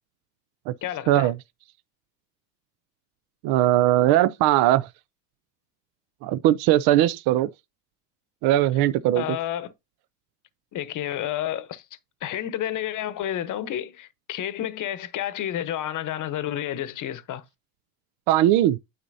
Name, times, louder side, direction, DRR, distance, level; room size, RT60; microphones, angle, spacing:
voice 1, 0.8-1.3 9.1-9.7 10.7-11.9 12.2-17.4, left 11 dB, 40° left, 1.0 m, -30 dB
voice 2, 3.4-4.9 6.2-7.5 8.4-9.4 18.3-18.8, right 13 dB, 50° right, 0.5 m, -20 dB
9.4 x 4.1 x 2.7 m
supercardioid pair, 105°, 49 cm